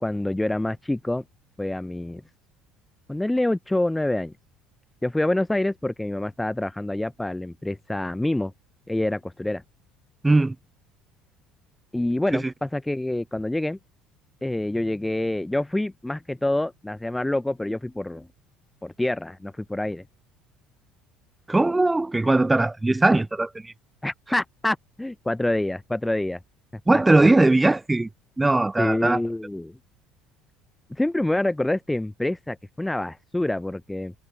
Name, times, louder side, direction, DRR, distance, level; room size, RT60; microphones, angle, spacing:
voice 1, 0.0-1.2 1.6-2.2 3.1-4.3 5.0-8.5 8.9-9.6 11.9-13.8 14.4-18.3 18.8-20.0 24.0-26.4 26.9-27.3 28.8-29.8 30.9-34.1, left 1 dB, 10° left, 0.9 m, -26 dB
voice 2, 10.2-10.5 12.3-12.4 21.5-23.7 26.9-28.1 28.4-29.2, right 2 dB, 15° right, 1.3 m, -19 dB
hypercardioid pair, 70°, 0 cm